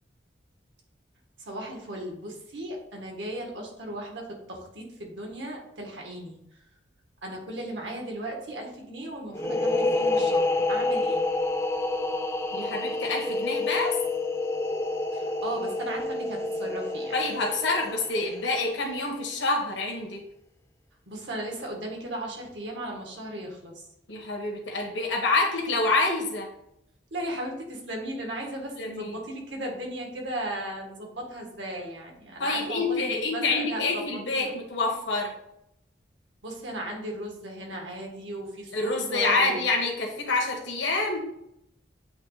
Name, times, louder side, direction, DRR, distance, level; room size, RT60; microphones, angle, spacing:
voice 1, 1.4-6.4 7.2-11.2 15.1-17.2 21.1-23.9 27.1-34.5 36.4-39.6, right 1 dB, 85° right, 1 dB, 1.7 m, -36 dB
sound 1, 9.3-18.8, left 2 dB, 15° left, 0.4 m, -28 dB
voice 2, 12.5-13.9 17.1-20.2 24.1-26.5 28.8-29.1 32.4-35.3 38.7-41.3, left 3 dB, 85° left, 0 dB, 1.3 m, -27 dB
8.0 x 3.2 x 4.0 m, 0.79 s
head